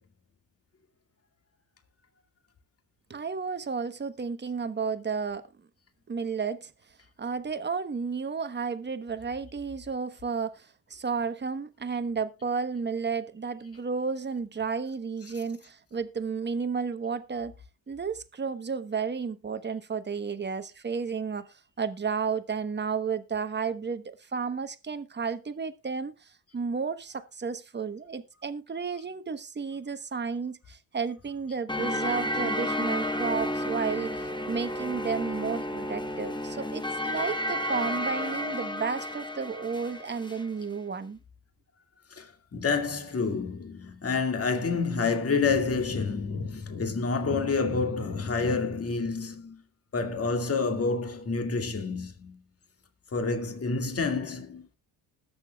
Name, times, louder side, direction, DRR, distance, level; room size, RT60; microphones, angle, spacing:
voice 1, 3.1-5.5 6.1-6.7 7.2-17.5 17.9-41.2, right 5 dB, 25° right, 1.2 m, -32 dB
sound 1, 31.7-40.5, left 1 dB, 10° left, 1.2 m, -32 dB
voice 2, 42.1-49.6 49.9-52.4 53.1-54.7, left 4 dB, 30° left, 2.2 m, -28 dB
20.5 x 7.0 x 2.4 m
supercardioid pair, 85°, 44 cm